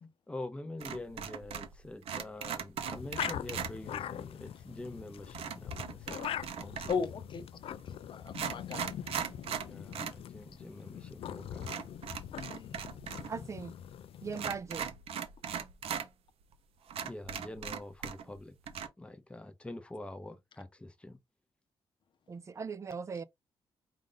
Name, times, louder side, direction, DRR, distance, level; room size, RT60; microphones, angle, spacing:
voice 1, 0.3-6.2 6.6-6.9 9.6-11.8 13.2-13.6 17.0-18.5 19.0-21.2, left 2 dB, 10° left, 0.7 m, -45 dB
sound 1, 0.8-1.8 2.0-3.7 5.3-7.1 7.8-7.9 8.3-10.2 10.5-10.6 11.6-13.3 13.5-13.6 14.3-16.1 16.5-16.6 16.9-18.4 18.7-18.9, right 8 dB, 80° right, 0.8 m, -39 dB
sound 2, 2.8-14.6, left 10 dB, 75° left, 0.4 m, -43 dB
voice 2, 6.9-7.4 7.7-8.9 12.3-12.8, left 5 dB, 55° left, 0.8 m, -37 dB
voice 3, 13.3-13.7 14.2-14.9 22.3-23.2, right 5 dB, 30° right, 0.4 m, -39 dB
5.0 x 2.5 x 3.8 m
wide cardioid pair, 135°, 10 cm